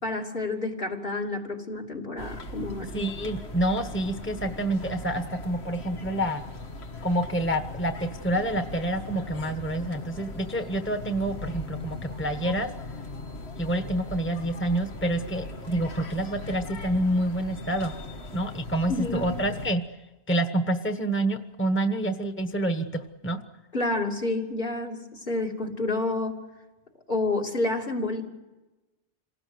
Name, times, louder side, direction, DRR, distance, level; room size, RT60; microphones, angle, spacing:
voice 1, 0.0-2.9 18.9-19.3 23.7-26.4 27.1-28.2, left 2 dB, 60° left, 1 dB, 3.1 m, -29 dB
sound 1, 2.2-19.7, left 2 dB, 90° left, 1.9 m, -39 dB
voice 2, 2.9-6.4 7.0-12.7 13.6-17.9 18.3-19.8 20.3-23.4, right 1 dB, 10° left, 6 dB, 1.3 m, -28 dB
27.5 x 18.5 x 7.8 m, 1.1 s
omnidirectional pair, 1.1 m